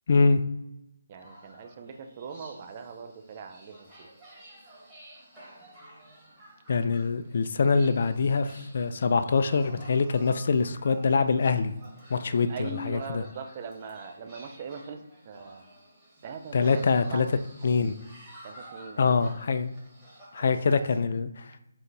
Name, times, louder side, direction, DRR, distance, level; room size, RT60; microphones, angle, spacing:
voice 1, 0.1-0.4 6.7-11.7 12.1-13.2 16.5-17.3 17.6-17.9 19.0-19.7 20.3-21.5, left 4 dB, 50° left, 10 dB, 0.3 m, -24 dB
voice 2, 1.1-4.1 12.5-15.0 15.3-15.6 16.2-16.8 17.1-17.2 17.8-17.9 18.4-19.3 20.4-20.8, right 5 dB, 35° right, 6 dB, 0.5 m, -41 dB
sound 1, 1.2-21.0, right 1 dB, 10° right, 1.5 m, -51 dB
3.9 x 2.5 x 4.4 m, 0.90 s
figure-of-eight pair, 150°, 0 cm